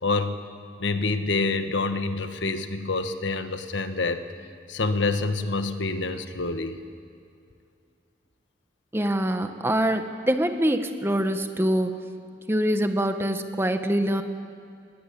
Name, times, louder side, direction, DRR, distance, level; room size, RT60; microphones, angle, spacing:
voice 1, 0.0-0.3 0.8-4.2 4.7-6.8, left 3 dB, 85° left, 9 dB, 1.3 m, -27 dB
voice 2, 8.9-11.9 12.5-14.2, right 1 dB, 15° right, 7 dB, 1.2 m, -24 dB
20.5 x 19.0 x 8.6 m, 2.5 s
head